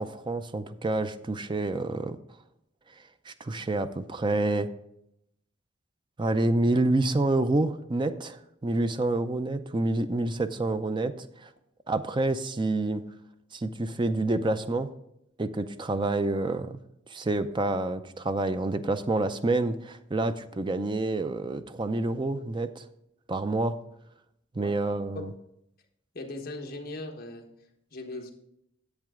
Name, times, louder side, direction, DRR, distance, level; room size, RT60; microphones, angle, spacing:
voice 1, 0.0-2.2 3.3-4.7 6.2-11.5 11.9-13.0 13.5-14.9 15.4-16.8 17.1-22.8 23.3-23.7 24.5-25.3, right 2 dB, 25° right, 10 dB, 0.4 m, -28 dB
voice 2, 26.1-27.4 27.9-28.3, left 2 dB, 45° left, 2 dB, 1.3 m, -38 dB
10.5 x 8.0 x 3.7 m, 0.79 s
head